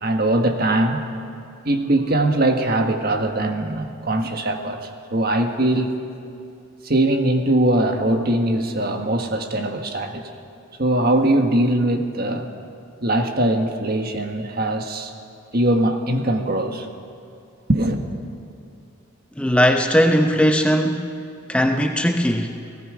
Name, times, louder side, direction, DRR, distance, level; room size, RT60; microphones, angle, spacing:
voice 1, 0.0-1.0 1.6-5.9 6.8-10.3 10.8-12.5 13.0-15.1 15.5-16.9 17.7-18.0, right 1 dB, 45° right, 5 dB, 1.5 m, -21 dB
voice 2, 19.4-21.2 21.5-22.5, equal, 5° left, 4 dB, 0.7 m, -18 dB
30.0 x 18.0 x 5.0 m, 2.5 s
head